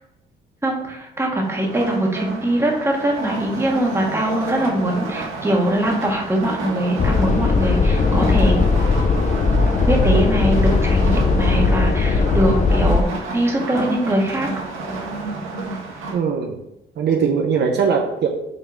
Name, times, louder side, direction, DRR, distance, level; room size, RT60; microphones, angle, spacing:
voice 1, 0.6-8.5 9.8-13.0 13.3-14.5, right 1 dB, 15° right, -1 dB, 1.6 m, -22 dB
sound 1, 1.4-16.2, right 3 dB, 90° right, 1.6 m, -30 dB
sound 2, 7.0-13.0, left 4 dB, 40° left, 0.6 m, -18 dB
voice 2, 16.1-16.6 17.0-18.3, right 6 dB, 60° right, 1 dB, 0.8 m, -20 dB
5.7 x 3.6 x 5.1 m, 0.87 s
cardioid pair, 90°, 20 cm